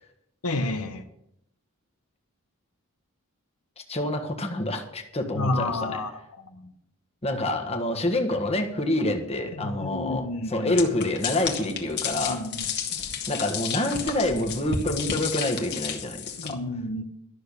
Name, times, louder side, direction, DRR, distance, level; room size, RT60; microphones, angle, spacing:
voice 1, 0.4-1.0 5.3-6.1 6.4-6.7 9.5-10.8 12.1-12.7 16.4-17.0, left 2 dB, 80° left, 6 dB, 1.1 m, -30 dB
voice 2, 3.9-6.0 7.2-12.4 13.3-16.6, left 1 dB, 30° left, 3 dB, 1.5 m, -27 dB
sound 1, 10.7-16.5, left 6 dB, 50° left, 1.7 m, -32 dB
12.5 x 6.7 x 8.4 m, 0.80 s
head